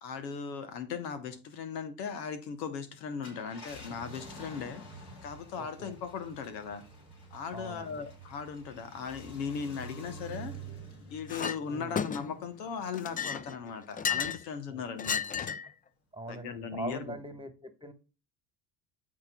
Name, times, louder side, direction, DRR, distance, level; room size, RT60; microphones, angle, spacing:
voice 1, 0.0-4.8 5.2-6.8 7.3-10.5 11.1-15.6 16.3-17.2, left 6 dB, 90° left, 1.1 m, -38 dB
Car, 3.2-13.9 14.4-14.5 16.5-16.8, right 2 dB, 55° left, 3.9 m, -49 dB
voice 2, 5.6-5.9 7.5-8.0 11.7-12.0 14.7-14.8 16.1-17.9, right 2 dB, 10° right, 1.3 m, -42 dB
Chink clink, 11.3-11.6 11.9-12.5 12.9-14.4 15.0-15.7, left 7 dB, 20° left, 0.4 m, -33 dB
13.0 x 4.4 x 2.3 m
hypercardioid pair, 65°, 48 cm